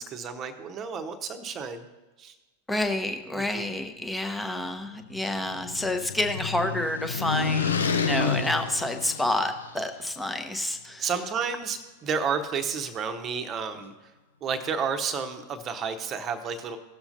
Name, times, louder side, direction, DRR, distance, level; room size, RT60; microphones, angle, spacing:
voice 1, 0.0-1.9 2.2-2.3 3.4-3.7 11.0-13.9 14.4-16.8, right 6 dB, 30° right, 8 dB, 1.0 m, -31 dB
voice 2, 2.7-11.1, left 1 dB, 5° left, 6 dB, 0.9 m, -29 dB
sound 1, 5.0-9.8, left 5 dB, 70° left, 0.6 m, -29 dB
17.0 x 7.1 x 2.7 m, 1.2 s
figure-of-eight pair, 90°, 0 cm